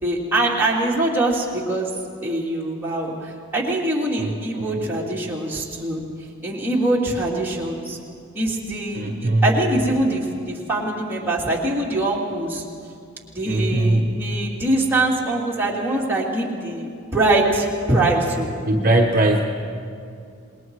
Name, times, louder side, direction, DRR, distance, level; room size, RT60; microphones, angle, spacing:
voice 1, 0.0-1.9 2.2-6.0 6.4-8.0 8.3-12.6 13.3-18.5, right 2 dB, 10° right, -4 dB, 2.7 m, -23 dB
voice 2, 4.2-4.8 8.9-9.5 13.4-14.2 18.7-19.4, right 1 dB, 40° right, 2 dB, 1.0 m, -20 dB
27.0 x 21.0 x 4.8 m, 2.3 s
head